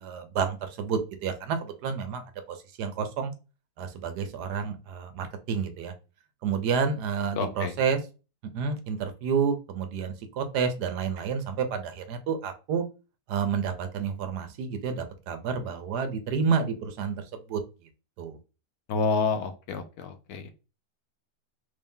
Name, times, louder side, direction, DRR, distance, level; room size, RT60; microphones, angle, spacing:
voice 1, 0.0-2.2 2.8-3.3 3.8-5.9 6.4-8.0 8.5-12.8 13.3-17.2 17.5-17.6 18.2-18.4, right 6 dB, 75° right, 8 dB, 1.2 m, -29 dB
voice 2, 7.4-7.7 18.9-20.5, left 4 dB, 70° left, 7 dB, 1.0 m, -29 dB
3.4 x 2.7 x 3.5 m, 0.31 s
omnidirectional pair, 1.8 m